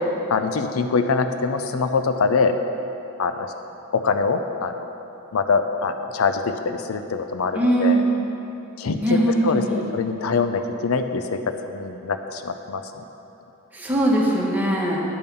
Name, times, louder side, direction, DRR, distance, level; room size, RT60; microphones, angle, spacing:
voice 1, 0.3-2.5 3.2-3.5 3.9-4.7 5.3-8.0 8.8-9.2 9.4-11.4 11.7-12.8, left 4 dB, 80° left, 8 dB, 0.5 m, -23 dB
voice 2, 7.5-8.2 9.0-9.8 13.7-15.0, right 1 dB, 10° right, -5 dB, 1.5 m, -20 dB
10.5 x 5.4 x 6.8 m, 2.9 s
head